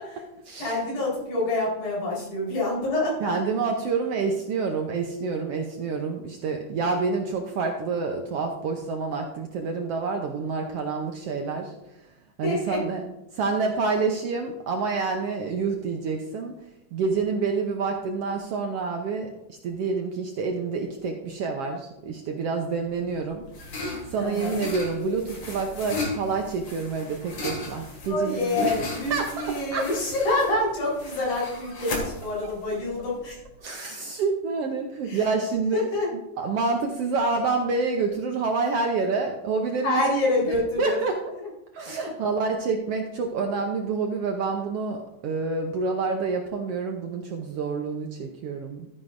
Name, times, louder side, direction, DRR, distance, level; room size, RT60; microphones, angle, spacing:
voice 1, 0.6-3.3 12.4-12.8 24.2-24.6 28.1-33.4 35.0-35.3 35.7-36.1 39.8-41.0, left 2 dB, 80° left, -5 dB, 5.7 m, -27 dB
voice 2, 3.2-11.7 12.4-13.0 13.3-16.6 16.9-23.4 23.7-23.8 24.1-28.8 29.1-29.9 33.6-35.9 36.4-40.0 40.8-41.2 41.7-48.9, right 4 dB, 70° right, 3 dB, 1.5 m, -28 dB
sound 1, 22.9-33.5, left 2 dB, 45° left, 2.8 m, -36 dB
13.0 x 9.5 x 2.6 m, 0.95 s
omnidirectional pair, 3.5 m